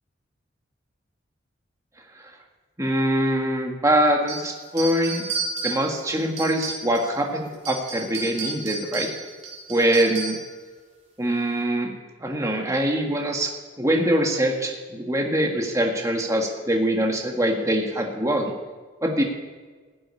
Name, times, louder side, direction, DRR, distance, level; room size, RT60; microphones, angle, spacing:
voice 1, 2.8-5.2 5.6-9.1 9.7-10.4 11.2-11.9 12.2-18.5 19.0-19.2, right 1 dB, 15° right, 1 dB, 1.5 m, -23 dB
sound 1, 4.3-7.2 7.5-10.5, right 4 dB, 35° right, 3.5 m, -33 dB
15.0 x 7.7 x 9.8 m, 1.4 s
head